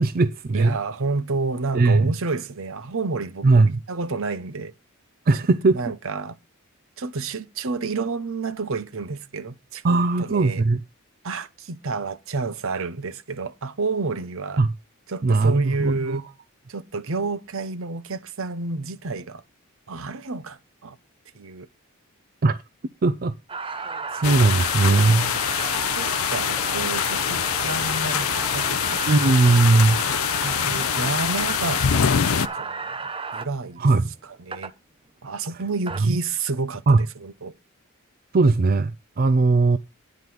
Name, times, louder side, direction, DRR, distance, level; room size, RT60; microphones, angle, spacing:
voice 1, 0.0-0.8 1.7-2.1 3.4-3.8 5.3-5.8 9.8-10.8 14.6-14.7 15.2-16.3 22.4-22.6 23.0-23.3 23.7-25.3 29.1-30.0 33.8-34.1 36.0-36.2 36.9-37.1 38.3-39.8, right 3 dB, 45° right, 0.5 m, -19 dB
voice 2, 0.5-4.7 5.7-6.3 7.0-10.6 11.2-14.6 15.1-16.2 16.7-19.4 19.9-21.0 21.3-21.7 25.5-29.0 29.3-29.4 30.4-33.8 34.4-34.7 35.2-37.5, right 3 dB, 65° right, 0.8 m, -30 dB
sound 1, 23.5-33.5 34.5-34.7 35.6-36.0, right 4 dB, 25° right, 0.9 m, -32 dB
sound 2, 24.2-32.5, left 9 dB, 70° left, 0.5 m, -24 dB
9.6 x 5.2 x 6.1 m
head